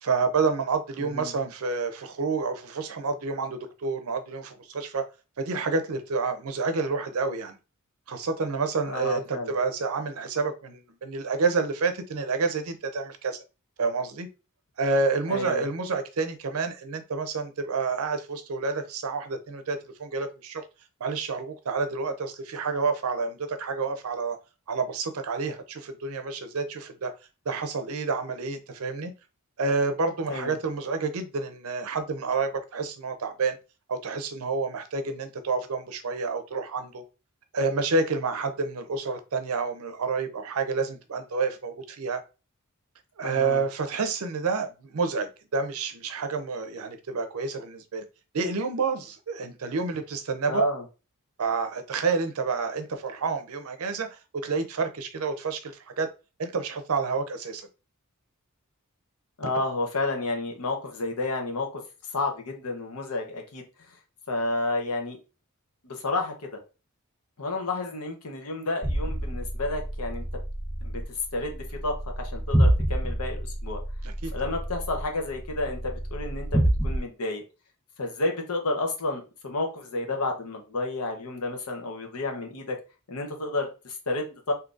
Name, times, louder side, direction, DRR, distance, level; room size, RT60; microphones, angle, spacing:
voice 1, 0.0-5.0 5.4-7.6 8.1-13.4 13.8-14.3 14.8-20.6 21.0-24.4 24.7-27.1 27.5-29.1 29.6-33.6 33.9-37.0 37.5-42.2 43.2-48.0 48.3-50.7 51.4-56.1 56.4-57.7 74.0-74.5, right 4 dB, 70° right, 0.5 m, -29 dB
voice 2, 1.0-1.3 8.9-9.5 15.3-15.6 30.3-30.6 43.2-43.6 50.5-50.8 59.4-61.8 62.1-63.6 64.3-65.2 65.8-66.5 67.4-70.2 70.8-71.0 71.3-73.8 74.3-77.4 78.0-82.8 83.1-84.5, left 2 dB, 90° left, 0.9 m, -31 dB
sound 1, 68.8-77.0, right 1 dB, 10° right, 0.3 m, -28 dB
3.8 x 2.7 x 2.4 m
head